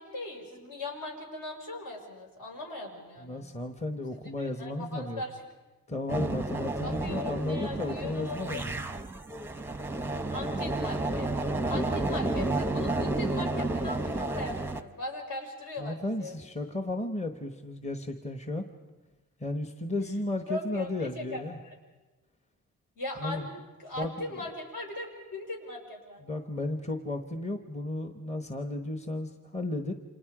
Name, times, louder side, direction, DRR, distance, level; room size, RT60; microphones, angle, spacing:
voice 1, 0.0-3.4 4.1-5.4 6.8-8.6 10.3-11.3 11.7-16.4 20.5-21.8 23.0-23.5 23.8-26.2, left 2 dB, 70° left, 1 dB, 5.4 m, -39 dB
voice 2, 3.2-5.2 5.9-8.8 15.8-18.6 19.4-21.6 23.2-23.5 24.0-24.1 26.2-29.9, left 2 dB, 20° left, 7 dB, 1.1 m, -34 dB
sound 1, 6.1-14.8, right 2 dB, 5° right, 0.7 m, -31 dB
29.0 x 26.5 x 4.9 m, 1.2 s
wide cardioid pair, 165°, 35 cm